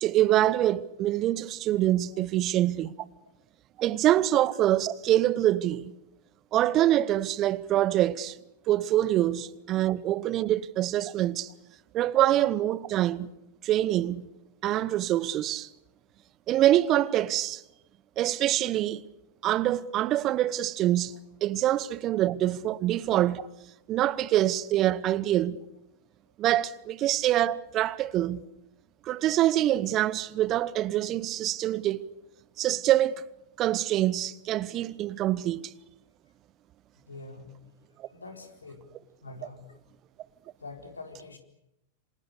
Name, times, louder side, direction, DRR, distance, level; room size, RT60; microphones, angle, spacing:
voice 1, 0.0-2.9 3.8-5.9 6.5-8.4 8.7-11.5 11.9-13.3 13.6-14.3 14.6-15.7 16.5-17.6 18.2-19.0 19.4-23.5 23.9-25.6 26.4-28.4 29.0-32.0 32.6-33.1 33.6-35.7 38.0-38.1, right 13 dB, 35° right, 1.0 m, -25 dB
voice 2, 37.1-37.5 38.1-38.8 39.2-39.8 40.6-41.4, left 3 dB, 85° left, 4.3 m, -44 dB
27.5 x 26.5 x 6.8 m
figure-of-eight pair, 95°, 0 cm